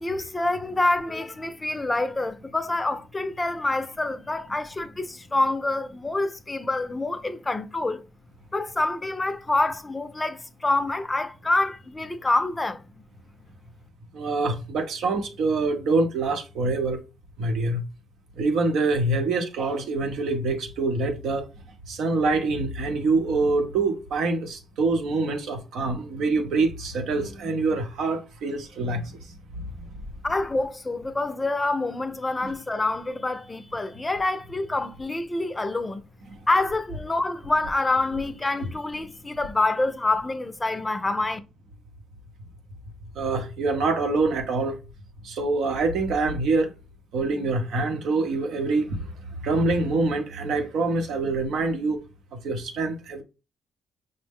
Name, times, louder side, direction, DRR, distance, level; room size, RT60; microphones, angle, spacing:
voice 1, 0.0-8.0 8.5-12.8 30.2-36.0 36.5-41.4, left 2 dB, 20° left, 0.4 m, -26 dB
voice 2, 14.1-17.0 17.4-17.8 18.4-21.5 21.9-29.2 29.8-29.9 32.4-32.5 43.1-44.8 45.2-46.7 47.1-49.1 49.4-52.0 52.3-53.2, right 3 dB, 75° right, 0.8 m, -25 dB
5.3 x 2.0 x 3.5 m
cardioid pair, 90°, 0 cm